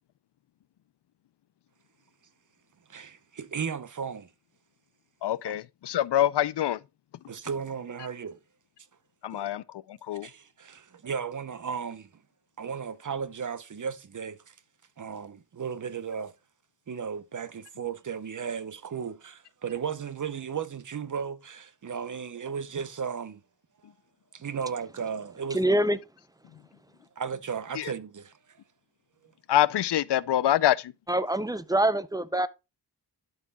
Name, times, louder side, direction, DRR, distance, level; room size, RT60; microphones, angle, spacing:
voice 1, 2.9-4.3 5.4-5.5 7.3-8.4 9.3-9.5 10.2-12.1 12.6-14.6 15.0-16.3 16.9-23.4 24.3-25.6 27.2-28.3, right 6 dB, 45° right, 0.8 m, -35 dB
voice 2, 5.2-6.8 9.2-9.6 9.9-10.3 27.8-27.9 29.5-30.9, left 12 dB, 75° left, 0.5 m, -25 dB
voice 3, 25.5-26.0 31.1-32.5, right 1 dB, 10° right, 0.4 m, -25 dB
12.0 x 5.6 x 2.3 m
wide cardioid pair, 140°, 41 cm